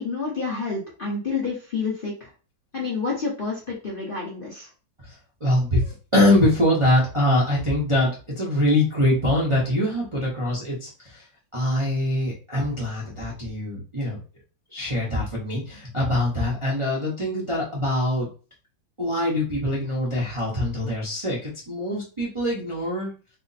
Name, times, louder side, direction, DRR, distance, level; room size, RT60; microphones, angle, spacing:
voice 1, 0.0-2.3 2.7-4.7, left 4 dB, 40° left, -5 dB, 0.8 m, -29 dB
voice 2, 5.4-8.1 8.4-11.2 11.5-14.2 14.7-18.3 19.0-23.1, left 1 dB, 25° right, -6 dB, 0.6 m, -23 dB
3.3 x 2.1 x 4.0 m, 0.35 s
omnidirectional pair, 1.9 m